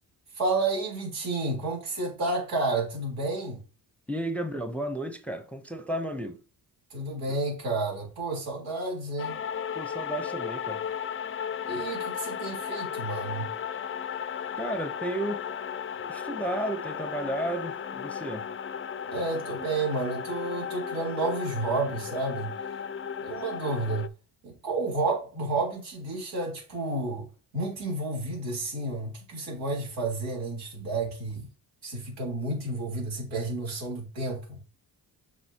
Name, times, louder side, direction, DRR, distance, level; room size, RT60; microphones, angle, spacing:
voice 1, 0.3-3.6 6.9-9.4 11.6-13.5 19.1-22.8 23.2-24.1 24.4-27.3 27.5-31.5 31.8-34.6, right 2 dB, 85° right, 3.8 m, -31 dB
voice 2, 4.1-6.4 9.7-10.8 14.6-15.4 16.0-18.5, right 1 dB, 5° left, 0.8 m, -33 dB
sound 1, 9.2-24.1, left 8 dB, 30° left, 0.4 m, -35 dB
8.0 x 5.3 x 2.9 m
cardioid pair, 80°, 45 cm